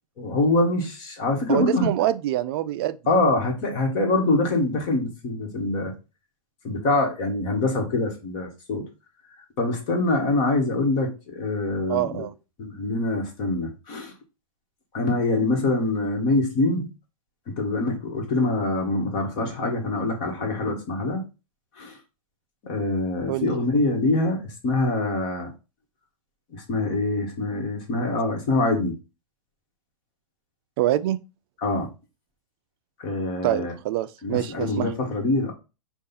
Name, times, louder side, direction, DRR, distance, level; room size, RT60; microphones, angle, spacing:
voice 1, 0.2-2.1 3.1-5.9 6.6-8.8 9.6-12.3 12.6-14.1 14.9-16.9 17.5-21.2 21.8-22.0 22.6-25.5 26.5-29.0 31.6-31.9 33.0-33.7 34.2-35.5, left 2 dB, 40° left, 1.7 m, -24 dB
voice 2, 1.5-3.0 11.9-12.3 23.3-23.5 30.8-31.2 33.4-34.9, right 14 dB, 40° right, 0.4 m, -25 dB
5.2 x 2.5 x 4.1 m
hypercardioid pair, 135°, 18 cm